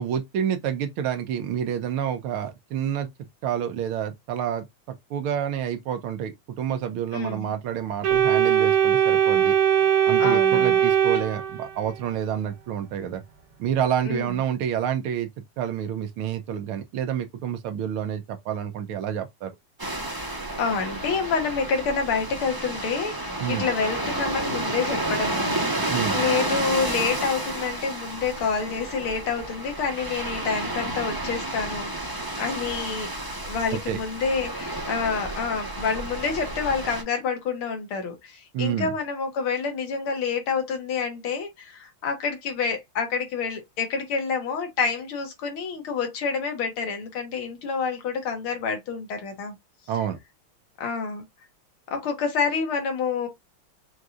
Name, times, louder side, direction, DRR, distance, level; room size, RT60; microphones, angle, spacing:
voice 1, 0.0-3.1 3.4-4.7 5.1-9.6 10.1-13.2 13.6-15.3 15.6-19.5 23.4-23.7 25.9-26.2 33.7-34.0 38.5-38.9 49.9-50.2, right 9 dB, 85° right, 1.7 m, -28 dB
voice 2, 7.1-7.5 10.2-10.8 14.1-14.3 20.6-33.1 33.4-49.6 50.8-51.2 51.9-53.3, left 5 dB, 75° left, 2.2 m, -28 dB
Organ, 8.0-12.0, right 9 dB, 65° right, 1.6 m, -20 dB
sound 1, 19.8-37.0, right 1 dB, 20° right, 0.5 m, -31 dB
6.2 x 2.7 x 2.4 m
omnidirectional pair, 2.3 m